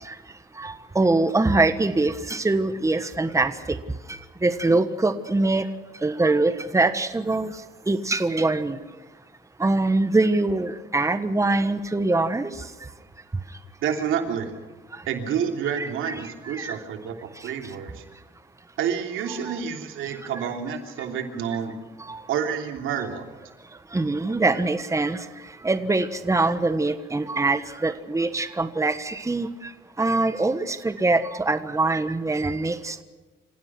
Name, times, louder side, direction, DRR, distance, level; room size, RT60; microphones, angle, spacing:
voice 1, 0.6-3.8 4.1-5.6 6.0-7.5 7.9-8.8 9.6-12.5 15.7-16.1 16.4-16.8 19.3-19.6 22.1-22.2 23.9-25.2 25.6-29.5 30.0-33.0, right 2 dB, 15° right, 10 dB, 1.4 m, -23 dB
voice 2, 13.8-14.5 15.0-18.0 18.8-21.8 22.3-23.3, right 8 dB, 85° right, 4 dB, 3.2 m, -29 dB
27.5 x 16.5 x 6.1 m, 1.3 s
cardioid pair, 90°, 20 cm